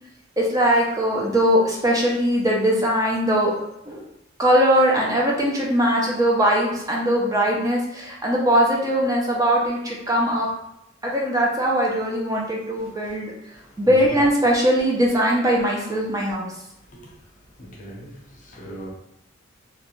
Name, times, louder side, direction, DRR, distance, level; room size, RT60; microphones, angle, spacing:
voice 1, 0.4-3.5 3.9-4.1 4.4-10.5 11.0-13.3 13.8-16.5, equal, 15° right, -2 dB, 0.4 m, -20 dB
voice 2, 13.5-14.2 16.9-17.1 17.6-18.9, equal, 40° left, -2 dB, 0.6 m, -39 dB
2.4 x 2.1 x 2.9 m, 0.83 s
head